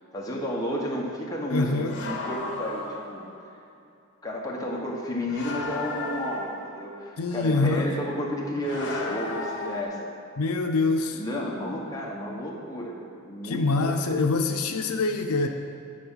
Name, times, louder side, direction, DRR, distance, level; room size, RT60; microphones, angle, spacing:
voice 1, 0.1-3.2 4.2-10.0 11.1-13.0 13.2-14.0, equal, 15° left, -3 dB, 1.1 m, -32 dB
voice 2, 1.5-2.0 7.2-7.9 10.4-11.2 13.4-15.5, left 3 dB, 85° left, 5 dB, 0.6 m, -25 dB
sound 1, 1.9-3.5 5.3-6.9 8.6-9.8, left 2 dB, 55° left, 1.1 m, -34 dB
9.5 x 4.8 x 5.5 m, 2.5 s
head